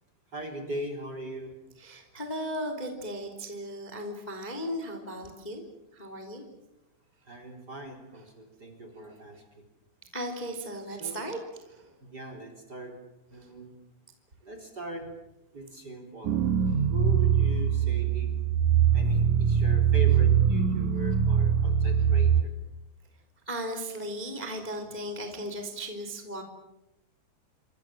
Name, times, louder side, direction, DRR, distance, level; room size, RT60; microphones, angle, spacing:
voice 1, 0.3-1.5 7.2-9.7 10.9-11.2 12.0-13.0 13.3-13.7 14.4-15.1 15.5-16.4 16.9-18.3 18.9-22.5, right 1 dB, 25° right, 6 dB, 4.1 m, -40 dB
voice 2, 1.8-5.6 5.9-6.4 10.1-11.9 23.5-26.4, equal, 10° left, 5 dB, 3.1 m, -36 dB
sound 1, 16.2-22.4, right 8 dB, 80° right, 1.7 m, -23 dB
28.0 x 26.0 x 7.6 m, 0.89 s
omnidirectional pair, 5.2 m